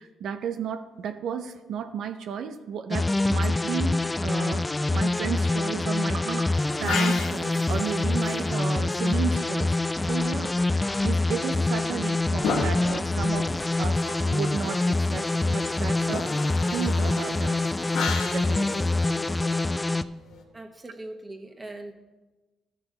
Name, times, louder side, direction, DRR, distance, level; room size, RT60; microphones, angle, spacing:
voice 1, 0.0-9.8 10.1-17.6 18.3-19.0, right 7 dB, 75° right, 8 dB, 0.6 m, -34 dB
sound 1, 2.9-20.0, left 2 dB, 15° left, 0.3 m, -25 dB
sound 2, 6.5-9.6 11.5-20.4, left 4 dB, 80° left, 1.1 m, -35 dB
voice 2, 20.5-21.9, right 2 dB, 20° right, 4 dB, 1.2 m, -41 dB
13.0 x 5.8 x 3.9 m, 1.1 s
cardioid pair, 90°, 0 cm